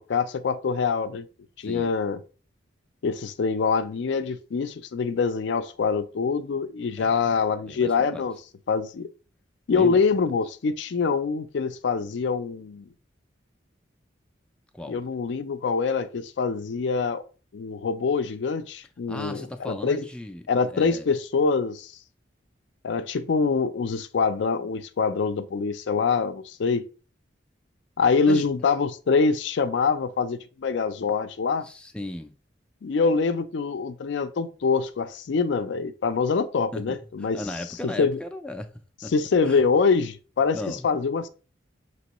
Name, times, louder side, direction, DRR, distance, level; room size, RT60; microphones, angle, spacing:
voice 1, 0.1-1.2 1.6-2.2 3.0-8.3 8.7-9.1 9.7-12.9 14.9-17.2 17.5-20.1 20.5-21.9 22.8-26.8 28.0-31.7 32.8-37.4 37.8-38.2 39.1-41.3, left 5 dB, 75° left, 0.4 m, -25 dB
voice 2, 7.0-7.4 7.7-8.2 9.7-10.0 14.7-15.0 19.1-20.4 20.7-21.1 28.3-28.7 31.6-32.3 36.7-38.7 39.0-39.1 39.4-39.6 40.5-40.9, left 1 dB, 5° left, 0.3 m, -36 dB
6.0 x 3.0 x 2.9 m
head